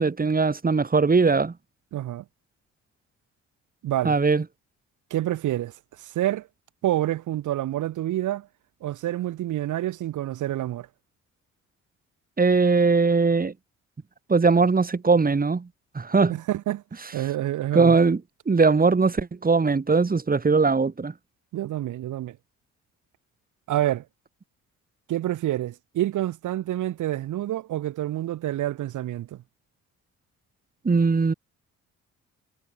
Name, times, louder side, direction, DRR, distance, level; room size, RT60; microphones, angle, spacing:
voice 1, 0.0-1.5 4.0-4.4 12.4-13.5 14.3-15.7 15.9-16.3 17.7-18.2 18.5-21.1 30.8-31.3, right 4 dB, 30° right, 7.0 m, -20 dB
voice 2, 1.9-2.2 3.8-4.2 5.1-6.5 6.8-8.5 8.8-10.9 16.3-16.8 17.1-18.0 21.5-22.4 23.7-24.0 25.1-29.4, right 13 dB, 80° right, 3.1 m, -28 dB
cardioid pair, 90°, 30 cm